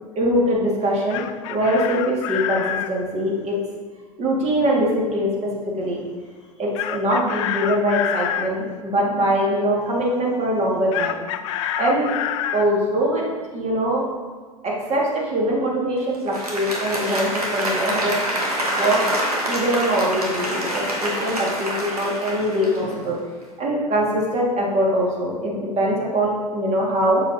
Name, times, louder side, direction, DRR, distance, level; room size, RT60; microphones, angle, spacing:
voice 1, 0.2-1.2 1.5-3.6 4.2-5.3 5.8-6.0 6.6-11.2 11.8-12.1 12.5-13.2 13.5-14.1 14.6-18.1 18.7-19.0 19.5-23.2 23.6-27.2, equal, 35° right, -3 dB, 1.9 m, -22 dB
Chicken rooster, 0.8-2.9 6.8-8.5 10.9-12.7, left 10 dB, 55° left, 0.4 m, -27 dB
Applause, 16.1-23.1, right 1 dB, 85° right, 1.2 m, -26 dB
6.9 x 6.4 x 2.8 m, 1.5 s
figure-of-eight pair, 80°, 19 cm